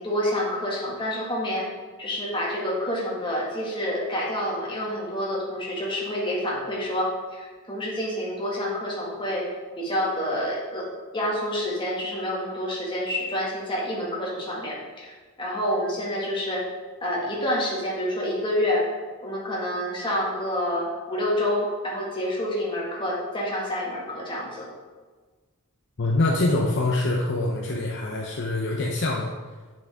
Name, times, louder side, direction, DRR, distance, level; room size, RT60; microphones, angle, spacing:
voice 1, 0.0-1.7 2.0-9.4 9.8-10.9 11.1-15.1 15.4-16.6 17.0-18.8 19.2-24.7, left 1 dB, 25° left, -5 dB, 2.0 m, -28 dB
voice 2, 26.0-29.3, left 2 dB, 55° left, 0 dB, 0.7 m, -24 dB
8.5 x 6.2 x 3.6 m, 1.4 s
head